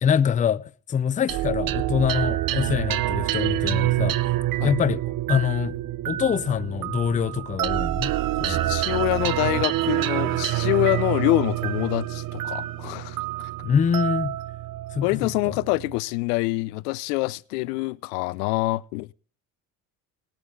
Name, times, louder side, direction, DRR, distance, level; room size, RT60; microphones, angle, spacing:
voice 1, 0.0-4.2 4.6-5.0 5.3-5.8 6.0-8.1 8.4-8.8 13.6-14.4 14.9-15.6, left 7 dB, 15° left, 0.4 m, -25 dB
sound 1, 1.3-16.0, right 15 dB, 45° right, 0.7 m, -27 dB
voice 2, 8.4-13.2 15.0-19.1, left 22 dB, 80° left, 0.5 m, -25 dB
19.0 x 7.9 x 3.7 m
hypercardioid pair, 65°, 47 cm